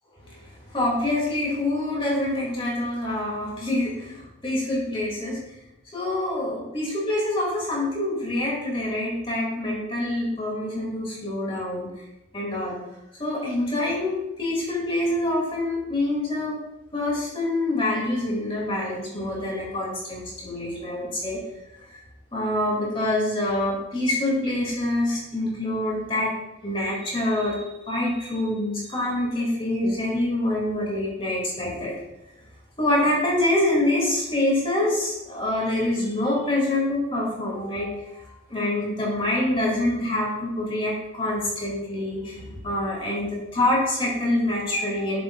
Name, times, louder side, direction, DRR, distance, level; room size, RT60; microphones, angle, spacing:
voice 1, 0.2-5.4 5.9-11.9 12.3-12.8 13.2-16.6 16.9-21.4 21.9-22.0 22.3-26.3 26.6-31.9 32.8-38.2 38.5-45.2, left 1 dB, 25° left, -4 dB, 2.2 m, -26 dB
12.5 x 7.0 x 2.3 m, 0.93 s
head